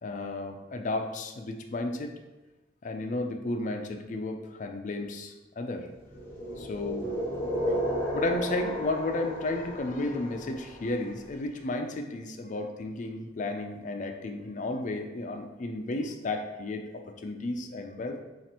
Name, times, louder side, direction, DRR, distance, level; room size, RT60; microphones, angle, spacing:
voice 1, 0.0-2.1 2.8-5.9 6.6-7.1 8.1-16.9 17.2-18.2, left 2 dB, 45° left, 4 dB, 0.4 m, -33 dB
sound 1, 6.1-11.1, equal, 10° left, 0.9 m, -33 dB
7.3 x 2.5 x 2.9 m, 1.1 s
head